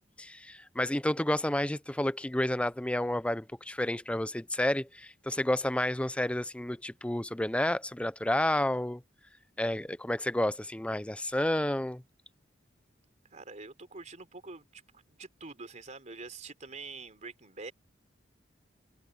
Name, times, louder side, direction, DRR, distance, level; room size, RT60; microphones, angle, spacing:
voice 1, 0.2-9.0 9.6-12.0, left 1 dB, 5° left, 0.6 m, -30 dB
voice 2, 13.3-17.7, right 3 dB, 40° right, 3.6 m, -46 dB
head